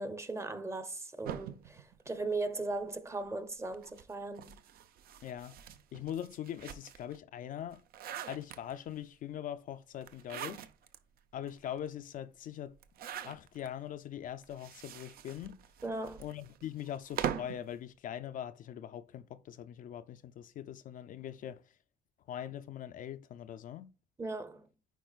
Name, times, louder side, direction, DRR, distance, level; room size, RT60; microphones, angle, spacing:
voice 1, 0.0-4.6 15.8-16.2 24.2-24.7, right 2 dB, 15° right, 0.8 m, -38 dB
sound 1, 1.2-2.8 3.7-7.2 7.6-9.0 10.0-11.0 11.5-11.6 11.8-11.9 12.8-13.7 14.4-17.6, right 9 dB, 60° right, 0.6 m, -43 dB
voice 2, 5.2-5.6 5.9-7.8 8.3-10.7 11.3-12.8 13.2-15.6 16.2-21.6 22.3-23.9, left 10 dB, 55° left, 0.4 m, -42 dB
9.1 x 4.8 x 2.4 m
cardioid pair, 110°, 17 cm